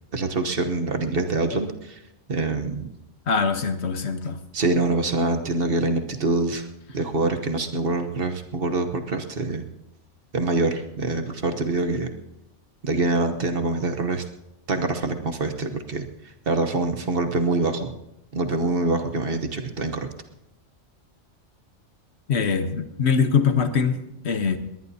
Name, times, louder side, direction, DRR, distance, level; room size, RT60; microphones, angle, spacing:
voice 1, 0.1-2.0 2.3-2.9 4.5-6.7 6.9-9.6 10.3-12.1 12.8-14.2 14.7-16.0 16.5-17.9 18.3-20.1, right 2 dB, 50° right, 6 dB, 1.2 m, -25 dB
voice 2, 3.3-4.4 22.3-24.0 24.2-24.6, left 5 dB, 65° left, 9 dB, 1.2 m, -22 dB
21.0 x 18.5 x 2.8 m, 0.86 s
omnidirectional pair, 1.3 m